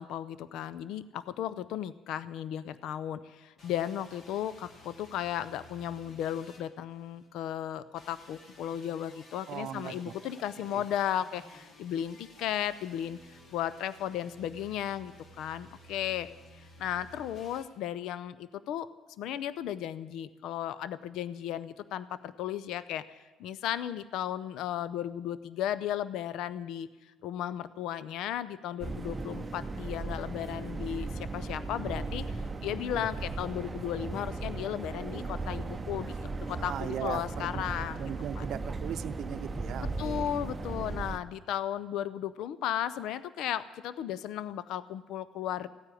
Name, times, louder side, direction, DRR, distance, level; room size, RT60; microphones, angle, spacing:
voice 1, 0.0-13.2 13.5-16.3 16.5-18.9 19.2-23.0 23.4-26.9 27.2-32.4 32.6-38.1 38.4-38.5 39.8-45.7, left 10 dB, 75° left, 16 dB, 0.6 m, -35 dB
Heavy Hammer, 3.6-7.3 7.9-17.6, left 1 dB, 40° left, 2.2 m, -55 dB
voice 2, 9.5-10.1 10.7-10.8 36.6-37.6 37.9-40.3, right 9 dB, 60° right, 9 dB, 0.7 m, -38 dB
sound 1, 28.8-41.2, right 3 dB, 20° right, 0.7 m, -37 dB
15.5 x 9.7 x 9.2 m, 1.2 s
cardioid pair, 140°, 0 cm